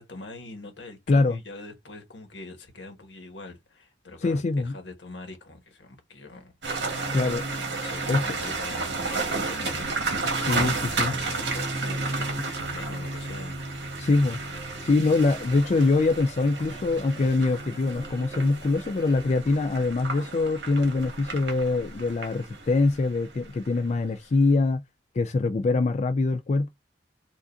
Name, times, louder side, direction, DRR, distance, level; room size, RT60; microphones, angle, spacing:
voice 1, 0.0-7.2 7.8-13.6, left 2 dB, 85° left, 1.3 m, -43 dB
voice 2, 1.1-1.4 4.2-4.7 7.1-7.4 8.1-8.2 10.5-11.1 14.0-14.4 14.8-24.8 25.2-26.7, left 3 dB, 40° left, 0.3 m, -23 dB
sound 1, 6.6-23.8, right 3 dB, 75° right, 1.3 m, -32 dB
sound 2, 14.5-20.2, right 2 dB, 25° right, 1.6 m, -50 dB
4.8 x 2.5 x 2.6 m
head